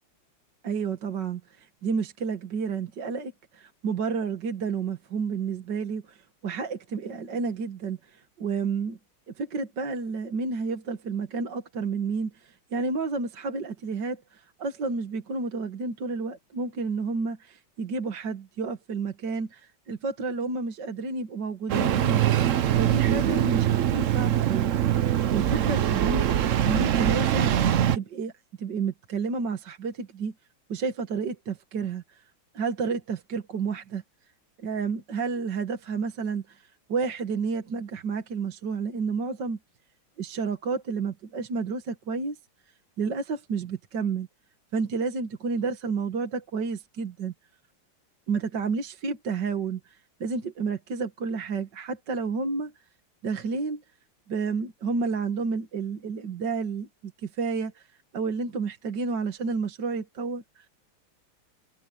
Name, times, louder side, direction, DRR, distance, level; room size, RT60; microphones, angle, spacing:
voice 1, 0.6-6.2 6.4-9.0 9.4-22.3 22.8-24.7 25.3-26.2 26.6-27.5 27.9-28.3 28.6-30.3 30.7-32.0 32.5-34.0 34.6-36.6 36.9-39.6 40.2-42.4 43.0-44.3 44.7-47.3 48.3-49.9 50.2-52.7 53.2-53.8 54.3-56.9 57.2-57.8 58.1-60.6, right 4 dB, 60° right, 2.3 m, -30 dB
Engine starting, 21.7-28.0, right 10 dB, 75° right, 0.7 m, -23 dB
omnidirectional pair, 2.3 m